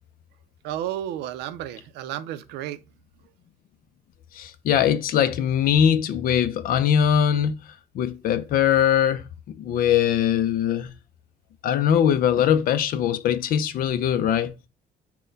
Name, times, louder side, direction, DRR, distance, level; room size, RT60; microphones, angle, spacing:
voice 1, 0.6-2.8, right 12 dB, 85° right, 0.4 m, -32 dB
voice 2, 4.3-7.5 7.9-10.9 11.6-14.5, left 9 dB, 60° left, 0.4 m, -21 dB
4.2 x 2.2 x 3.8 m
cardioid pair, 110°, 17 cm